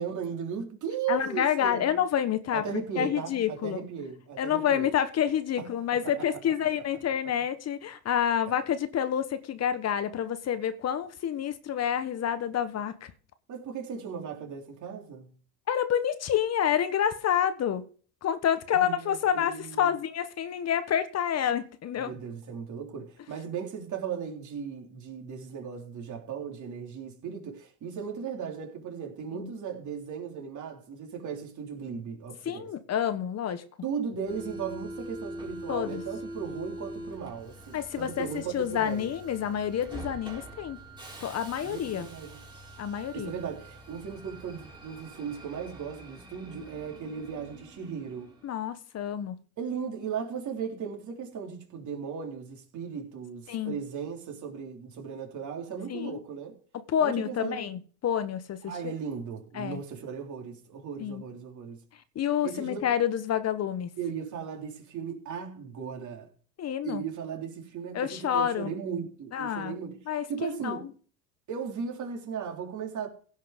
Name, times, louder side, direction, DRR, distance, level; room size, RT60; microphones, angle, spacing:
voice 1, 0.0-2.0 2.5-4.9 5.6-5.7 6.0-6.1 13.5-15.3 18.7-19.9 22.0-32.7 33.8-39.1 41.6-42.4 43.1-48.4 49.6-56.6 57.0-57.7 58.7-61.8 62.4-62.9 64.0-66.3 66.8-70.9 71.5-73.1, right 7 dB, 40° right, 3.7 m, -37 dB
voice 2, 1.1-3.8 4.4-13.1 15.7-17.9 18.2-22.1 29.3-29.5 32.4-33.6 35.7-36.0 37.7-40.8 41.2-42.1 42.8-43.3 48.4-49.4 53.5-53.8 55.9-56.2 56.9-58.9 59.5-59.8 61.0-61.2 62.1-63.9 66.6-67.0 67.9-68.7 69.3-69.8 70.1-70.9, left 9 dB, 35° left, 1.2 m, -28 dB
Subway metro underground, 34.3-48.6, right 1 dB, 10° right, 3.7 m, -44 dB
16.5 x 5.6 x 5.2 m
hypercardioid pair, 95°, 44 cm